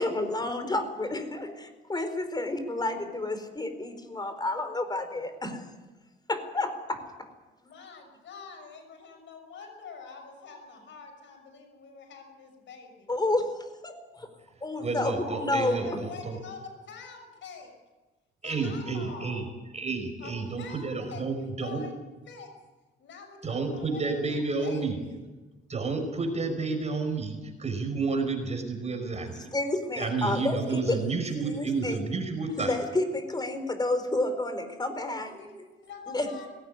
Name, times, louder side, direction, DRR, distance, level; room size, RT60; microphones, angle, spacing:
voice 1, 0.0-5.6 6.3-7.3 13.1-14.3 14.6-15.8 29.5-31.0 31.4-32.0 32.6-35.3 36.1-36.3, left 2 dB, 20° left, 9 dB, 4.4 m, -30 dB
voice 2, 7.6-13.1 15.6-17.7 18.4-19.6 20.2-22.0 22.3-22.5 23.0-25.2 35.0-35.6 35.8-36.5, left 5 dB, 70° left, 5 dB, 6.1 m, -46 dB
voice 3, 14.8-16.4 18.4-19.4 19.7-21.8 23.4-25.0 25.7-29.5 30.0-32.8, right 4 dB, 35° right, 5 dB, 5.2 m, -30 dB
20.0 x 17.5 x 9.8 m, 1.2 s
cardioid pair, 90°, 20 cm